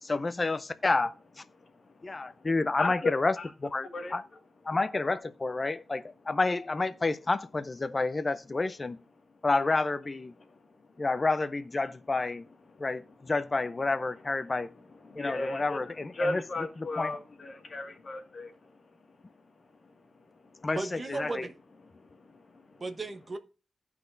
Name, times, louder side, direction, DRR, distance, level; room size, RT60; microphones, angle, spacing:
voice 1, 0.0-1.4 2.0-4.2 4.6-9.0 9.4-10.3 11.0-12.4 12.8-14.7 15.1-16.4 17.0-17.2 20.6-21.5, left 3 dB, 25° left, 0.5 m, -29 dB
voice 2, 1.6-2.5 2.8-3.5 3.8-4.2 10.5-10.6 10.9-11.0 12.7-12.9 15.0-18.8 19.9-20.0 20.3-20.7 21.9-22.8, left 2 dB, 40° left, 1.8 m, -36 dB
voice 3, 20.7-21.5 22.8-23.4, right 3 dB, 30° right, 0.9 m, -35 dB
15.5 x 5.9 x 2.6 m
wide cardioid pair, 155°, 0 cm